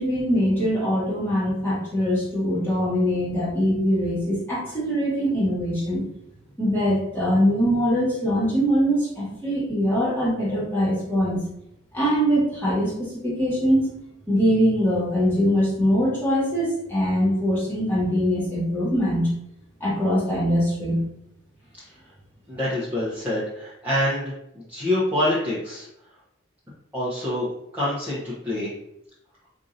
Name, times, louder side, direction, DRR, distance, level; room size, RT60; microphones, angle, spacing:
voice 1, 0.0-6.0 6.6-11.4 11.9-13.9 14.3-19.3 19.8-21.1, equal, 10° left, -8 dB, 1.5 m, -22 dB
voice 2, 22.5-24.3 24.7-25.9 26.9-27.5 27.7-28.7, left 1 dB, 10° right, -11 dB, 0.8 m, -25 dB
4.6 x 2.6 x 2.6 m, 0.77 s
head